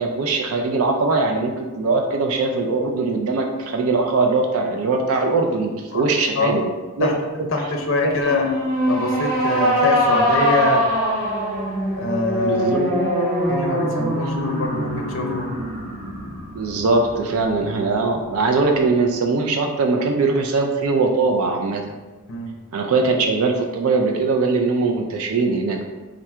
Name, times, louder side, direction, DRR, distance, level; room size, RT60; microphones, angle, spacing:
voice 1, 0.0-6.7 7.0-7.1 12.4-12.9 16.6-21.8 22.7-25.8, right 3 dB, 70° right, 3 dB, 0.4 m, -21 dB
voice 2, 7.5-8.5 8.9-10.8 11.9-12.7 13.5-15.5 22.3-22.5, left 3 dB, 55° left, 1 dB, 0.5 m, -24 dB
sound 1, 8.2-17.6, equal, 35° right, 0.8 m, -23 dB
3.7 x 2.3 x 4.3 m, 1.3 s
head